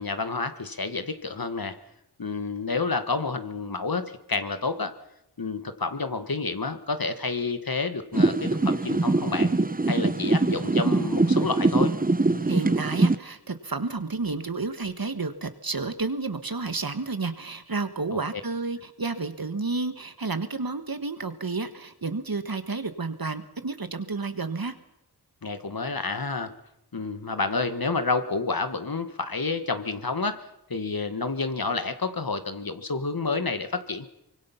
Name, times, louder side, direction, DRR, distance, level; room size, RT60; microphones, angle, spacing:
voice 1, 0.0-1.8 2.2-4.9 5.4-9.5 9.9-11.9 18.1-18.2 25.4-26.5 26.9-34.1, left 4 dB, 55° left, 9 dB, 1.7 m, -29 dB
sound 1, 8.1-13.2, right 2 dB, 20° right, 0.8 m, -23 dB
voice 2, 12.4-24.7, right 3 dB, 55° right, 10 dB, 1.6 m, -31 dB
24.5 x 23.0 x 5.8 m, 0.84 s
wide cardioid pair, 50°, 42 cm